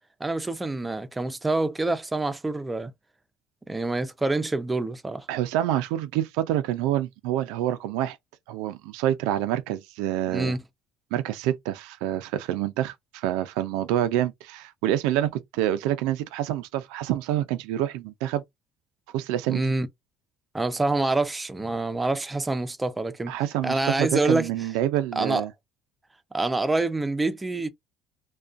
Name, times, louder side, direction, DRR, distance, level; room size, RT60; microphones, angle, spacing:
voice 1, 0.2-2.9 3.7-5.3 10.3-10.6 19.5-19.9 20.5-23.4 23.6-24.5 25.2-25.5 26.3-27.7, right 2 dB, 10° right, 0.4 m, -26 dB
voice 2, 5.3-8.2 8.5-10.6 11.1-18.4 19.1-19.7 23.3-25.5, right 12 dB, 85° right, 0.3 m, -27 dB
2.3 x 2.2 x 2.4 m
cardioid pair, 120°, 0 cm